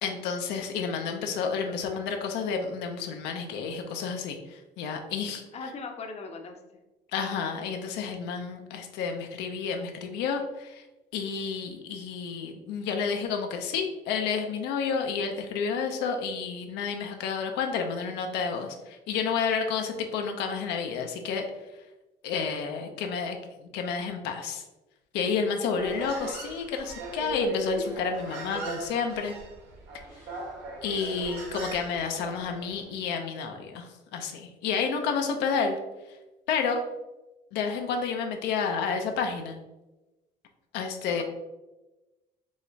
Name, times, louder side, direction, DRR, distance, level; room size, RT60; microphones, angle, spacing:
voice 1, 0.0-5.4 7.1-10.8 11.1-21.5 22.2-24.6 25.1-29.4 30.8-35.8 36.5-36.8 37.5-39.6 40.7-41.2, left 5 dB, 90° left, 4 dB, 0.5 m, -30 dB
voice 2, 5.5-6.6 41.2-41.3, left 4 dB, 40° left, 4 dB, 0.6 m, -38 dB
Human voice, 25.7-32.8, right 2 dB, 85° right, 1.2 m, -39 dB
4.8 x 3.1 x 2.7 m, 1.1 s
cardioid pair, 110°, 17 cm